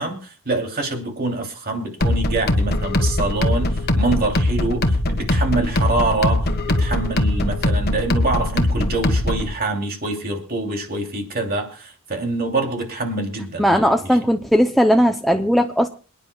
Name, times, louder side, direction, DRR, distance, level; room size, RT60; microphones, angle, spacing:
voice 1, 0.0-13.9, right 2 dB, 45° right, 3 dB, 2.9 m, -25 dB
sound 1, 2.0-9.5, left 1 dB, 50° left, 1.3 m, -21 dB
voice 2, 13.6-15.9, equal, ahead, 4 dB, 0.6 m, -17 dB
27.5 x 9.9 x 2.3 m, 0.35 s
head